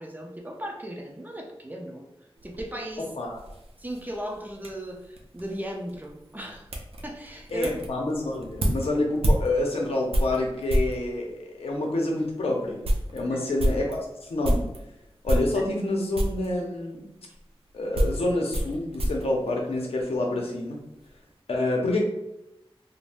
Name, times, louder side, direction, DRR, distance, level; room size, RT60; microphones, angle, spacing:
voice 1, 0.0-2.1 2.4-3.1 3.8-6.7 7.0-7.9 13.3-13.6, right 1 dB, 20° right, 1 dB, 0.5 m, -37 dB
sound 1, 2.4-11.0 11.7-11.8 12.3-12.4 12.6-14.8 15.2-15.9 16.1-16.5 17.3-20.2 20.5-21.1, equal, 75° right, 0.5 m, -29 dB
voice 2, 7.5-12.8 13.1-14.0 14.3-14.7 15.2-17.1 17.7-20.8 21.5-22.0, left 2 dB, 85° left, 0 dB, 0.6 m, -27 dB
3.3 x 2.1 x 2.5 m, 0.89 s
wide cardioid pair, 80°, 10 cm